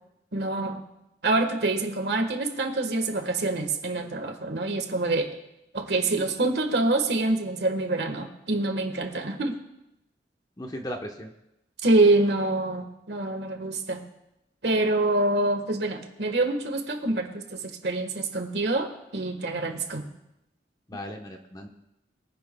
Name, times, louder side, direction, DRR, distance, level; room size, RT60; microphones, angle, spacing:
voice 1, 0.3-0.8 1.2-5.3 5.7-9.6 11.8-14.0 14.6-20.0, right 2 dB, 70° right, 5 dB, 1.5 m, -26 dB
voice 2, 10.6-11.3 20.9-21.7, equal, 20° left, 3 dB, 1.1 m, -36 dB
23.0 x 10.5 x 2.3 m, 0.88 s
head